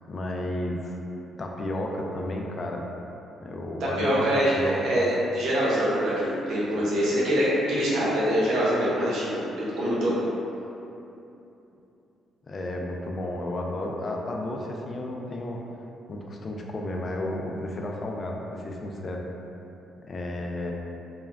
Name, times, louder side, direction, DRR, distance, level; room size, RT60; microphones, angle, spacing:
voice 1, 0.1-1.0 1.4-2.9 3.4-5.1 6.7-6.8 12.5-15.6 16.1-19.2 20.1-20.7, left 1 dB, 40° left, 0 dB, 0.3 m, -32 dB
voice 2, 4.0-10.1, equal, 75° right, -8 dB, 0.8 m, -24 dB
2.3 x 2.1 x 3.3 m, 2.8 s
cardioid pair, 90°, 0 cm